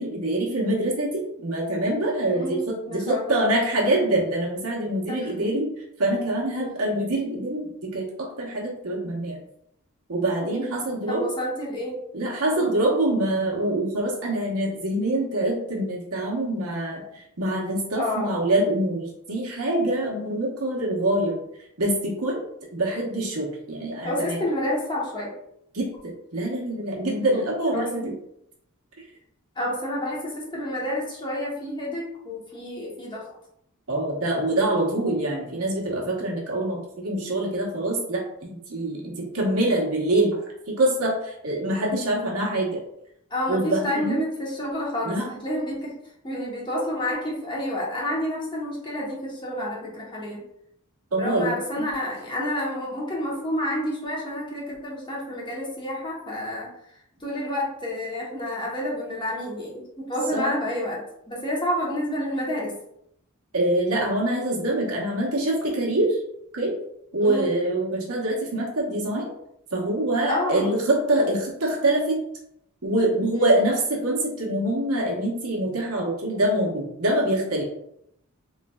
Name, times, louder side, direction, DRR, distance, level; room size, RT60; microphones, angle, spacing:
voice 1, 0.0-5.7 6.0-9.4 10.1-11.2 12.1-21.4 21.8-22.4 22.7-24.4 25.7-25.9 26.3-28.1 33.9-40.4 40.7-42.8 43.5-44.2 45.0-45.3 51.1-51.9 60.3-60.5 63.5-66.2 66.5-66.7 67.1-69.3 69.7-72.2 72.8-77.6, right 1 dB, 80° right, -2 dB, 1.1 m, -25 dB
voice 2, 2.3-3.5 5.1-5.5 6.6-6.9 10.4-10.7 11.1-12.0 12.5-12.7 18.0-18.3 24.0-25.4 27.3-27.5 27.7-28.1 29.6-33.3 43.3-45.9 46.2-50.4 51.1-56.7 57.2-62.8 67.2-67.5 70.3-70.8 73.3-73.6, left 1 dB, 20° left, -4 dB, 1.0 m, -29 dB
3.7 x 3.2 x 2.3 m, 0.75 s
head